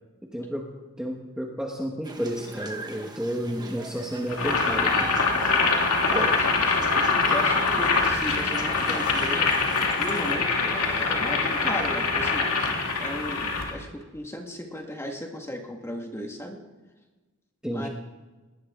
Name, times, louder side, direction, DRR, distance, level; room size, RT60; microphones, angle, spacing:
voice 1, 0.3-0.7 1.0-5.2 17.6-17.9, equal, 5° right, 0 dB, 1.4 m, -31 dB
sound 1, 2.0-10.3, right 2 dB, 20° right, 1.4 m, -40 dB
Boiling, 4.3-13.7, left 4 dB, 80° left, 2.6 m, -24 dB
voice 2, 6.1-9.5 10.0-12.5 13.0-16.6 17.7-17.9, equal, 10° left, 2 dB, 1.8 m, -36 dB
20.5 x 17.5 x 3.8 m, 1.2 s
head